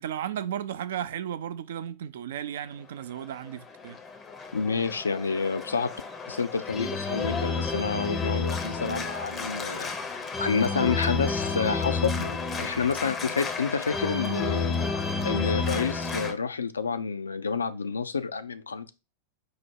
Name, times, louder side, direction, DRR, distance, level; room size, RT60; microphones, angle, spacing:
voice 1, 0.0-4.0, right 10 dB, 60° right, 0.3 m, -34 dB
Organ, 3.2-16.3, left 4 dB, 20° left, 0.5 m, -31 dB
voice 2, 4.5-5.9 6.3-9.9 10.4-18.9, left 5 dB, 75° left, 0.3 m, -29 dB
4.6 x 2.0 x 4.6 m
figure-of-eight pair, 90°, 0 cm